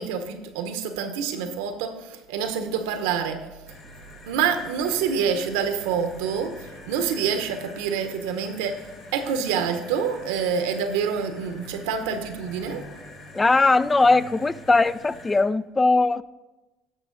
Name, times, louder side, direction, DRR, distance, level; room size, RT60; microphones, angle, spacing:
voice 1, 0.0-3.4 4.3-6.6 6.9-8.8 9.1-12.8, right 6 dB, 90° right, 0.9 m, -27 dB
sound 1, 3.7-15.4, left 2 dB, 60° left, 2.0 m, -46 dB
voice 2, 13.3-16.2, left 3 dB, 20° left, 0.3 m, -20 dB
10.5 x 6.6 x 3.9 m
supercardioid pair, 85°, 0 cm